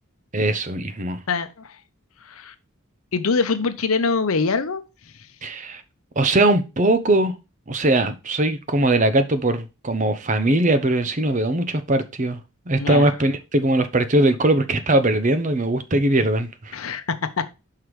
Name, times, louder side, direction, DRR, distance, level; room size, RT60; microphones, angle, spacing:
voice 1, 0.3-1.2 5.4-5.8 6.2-7.3 7.7-12.4 12.7-16.7, right 1 dB, 35° right, 0.7 m, -20 dB
voice 2, 1.3-1.8 2.2-2.5 3.1-4.8 12.8-13.1 16.7-17.5, left 4 dB, 80° left, 0.8 m, -24 dB
5.8 x 4.7 x 4.9 m
head